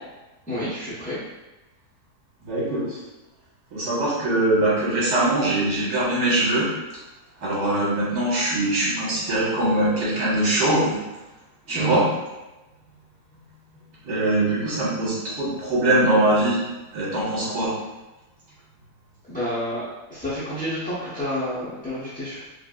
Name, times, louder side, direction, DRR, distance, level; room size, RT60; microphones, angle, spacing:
voice 1, 0.5-1.2 11.7-12.0 19.3-19.8 20.1-22.5, equal, 5° left, -13 dB, 0.8 m, -29 dB
voice 2, 2.5-3.0 3.7-6.7 7.4-11.0 11.7-12.1 14.0-16.6 16.9-17.7, right 1 dB, 75° right, -8 dB, 1.8 m, -22 dB
4.7 x 2.5 x 2.4 m, 1.1 s
omnidirectional pair, 1.6 m